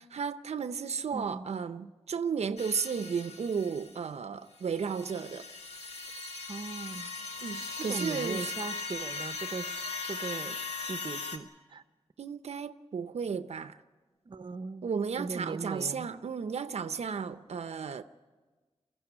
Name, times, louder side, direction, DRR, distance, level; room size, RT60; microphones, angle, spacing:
voice 1, 0.0-5.5 7.4-8.5 12.2-13.8 14.8-18.0, right 6 dB, 85° right, 0.7 m, -34 dB
voice 2, 1.1-1.5 6.5-7.1 7.8-10.6 10.9-11.8 14.3-14.9 15.2-16.1, right 4 dB, 50° right, 0.8 m, -39 dB
sound 1, 2.6-4.0 4.5-11.4, left 3 dB, 85° left, 2.1 m, -39 dB
23.0 x 15.5 x 9.9 m
wide cardioid pair, 110°, 11 cm